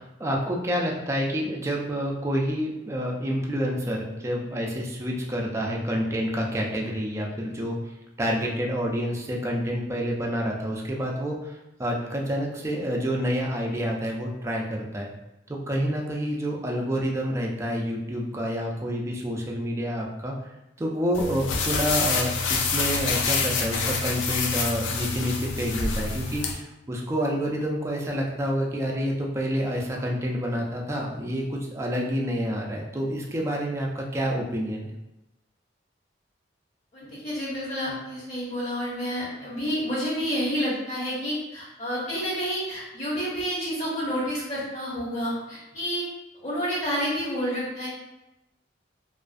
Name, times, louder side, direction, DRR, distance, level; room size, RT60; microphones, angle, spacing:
voice 1, 0.0-7.8 8.2-15.1 15.5-20.3 20.8-34.9, equal, 15° right, -1 dB, 0.3 m, -28 dB
sound 1, 21.1-26.5, left 4 dB, 90° left, 0.4 m, -27 dB
voice 2, 36.9-46.1 46.4-47.9, equal, 40° left, -7 dB, 0.8 m, -29 dB
2.4 x 2.3 x 2.4 m, 0.95 s
head